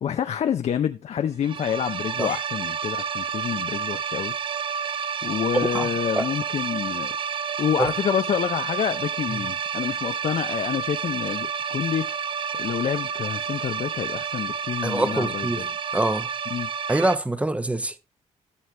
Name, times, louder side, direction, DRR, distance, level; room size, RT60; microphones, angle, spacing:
voice 1, 0.0-4.3 5.2-7.2 7.6-15.7 16.5-16.7, left 9 dB, 60° left, 0.6 m, -28 dB
sound 1, 1.4-17.2, right 7 dB, 40° right, 0.5 m, -30 dB
voice 2, 14.8-15.6 15.9-16.3 16.9-17.9, right 1 dB, 10° right, 0.8 m, -24 dB
12.5 x 6.5 x 3.2 m
cardioid pair, 90°, 12 cm